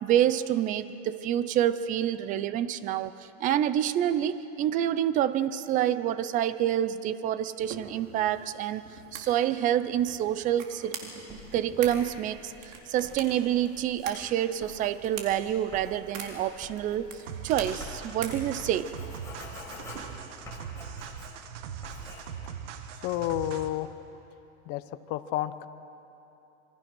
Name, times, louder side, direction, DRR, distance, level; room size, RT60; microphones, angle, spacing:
voice 1, 0.0-8.8 9.1-11.0 11.5-12.5 12.9-17.1 17.4-18.9, right 11 dB, 20° right, 14 dB, 0.5 m, -27 dB
sound 1, 7.6-20.4, right 5 dB, 90° right, 4.2 m, -45 dB
Writing, 11.3-21.5 21.8-22.2, left 3 dB, 10° left, 4.9 m, -47 dB
sound 2, 17.3-23.9, right 8 dB, 70° right, 1.7 m, -41 dB
voice 2, 23.0-23.9 24.7-24.8 25.1-25.7, left 14 dB, 40° left, 11 dB, 1.0 m, -30 dB
27.5 x 24.5 x 6.2 m, 2.9 s
supercardioid pair, 160°, 38 cm